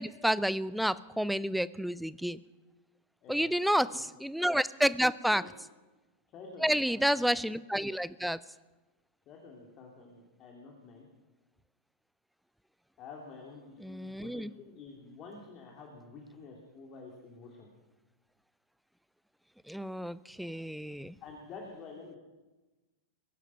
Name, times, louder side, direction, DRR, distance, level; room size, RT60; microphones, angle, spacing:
voice 1, 0.0-2.4 3.3-3.9 4.2-5.4 6.6-8.4 13.8-14.5 19.7-21.1, equal, ahead, 18 dB, 0.5 m, -30 dB
voice 2, 3.2-4.0 5.3-5.5 6.3-7.2 9.3-11.1 13.0-17.7 21.2-22.2, left 4 dB, 35° left, 0 dB, 2.7 m, -49 dB
21.5 x 11.0 x 5.8 m, 1.2 s
figure-of-eight pair, 90°, 0 cm